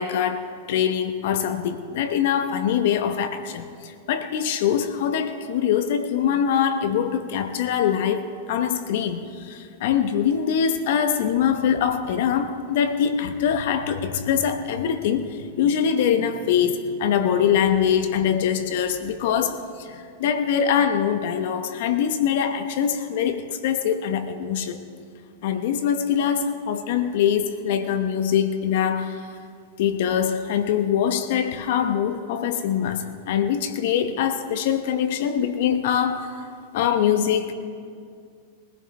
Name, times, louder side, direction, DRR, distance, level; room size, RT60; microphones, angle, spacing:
voice 1, 0.0-24.8 25.4-29.3 29.8-36.4 36.7-37.5, left 8 dB, 65° left, 9 dB, 0.9 m, -23 dB
23.5 x 15.5 x 3.2 m, 2.3 s
hypercardioid pair, 110°, 0 cm